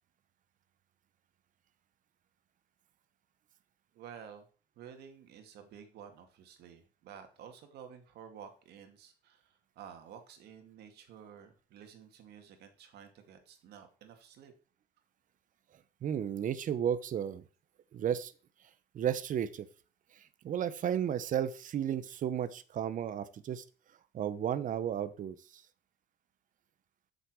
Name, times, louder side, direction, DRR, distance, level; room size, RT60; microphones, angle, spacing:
voice 1, 3.9-4.5 4.8-14.5, right 8 dB, 75° right, 6 dB, 2.3 m, -52 dB
voice 2, 16.0-17.4 17.9-18.3 18.9-19.7 20.2-23.6 24.1-25.6, right 9 dB, 50° right, 14 dB, 1.0 m, -33 dB
7.8 x 6.7 x 6.2 m, 0.38 s
cardioid pair, 110°, 17 cm